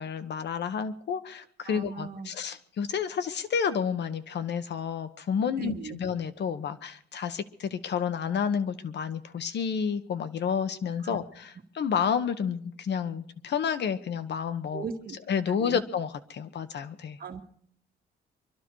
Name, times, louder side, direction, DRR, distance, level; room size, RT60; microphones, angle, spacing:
voice 1, 0.0-14.8 15.3-17.2, left 7 dB, 60° left, 11 dB, 1.2 m, -30 dB
voice 2, 1.6-2.3 5.6-6.0 11.0-11.2 14.7-15.2 15.6-15.8 17.2-17.4, right 5 dB, 50° right, 4 dB, 1.8 m, -37 dB
24.5 x 12.0 x 4.7 m, 0.63 s
cardioid pair, 90°, 20 cm